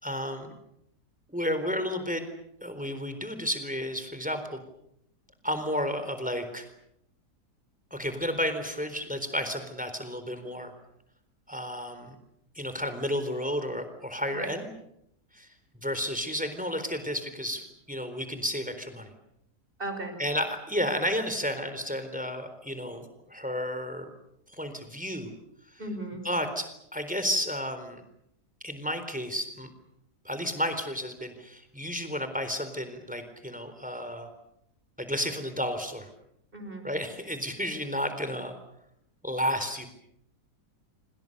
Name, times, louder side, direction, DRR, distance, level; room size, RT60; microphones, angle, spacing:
voice 1, 0.0-0.5 1.3-2.2 2.6-4.6 5.4-6.7 7.9-10.7 11.5-12.1 12.5-14.7 15.3-15.5 15.8-19.1 20.2-24.1 24.5-25.3 26.2-28.0 28.6-29.7 30.2-34.3 35.0-36.1 36.8-38.5 39.2-39.9, equal, 5° right, 9 dB, 4.0 m, -32 dB
voice 2, 19.8-20.2 25.8-26.2 36.5-36.8, right 1 dB, 30° right, 6 dB, 5.9 m, -36 dB
27.5 x 25.5 x 6.8 m, 0.78 s
omnidirectional pair, 1.8 m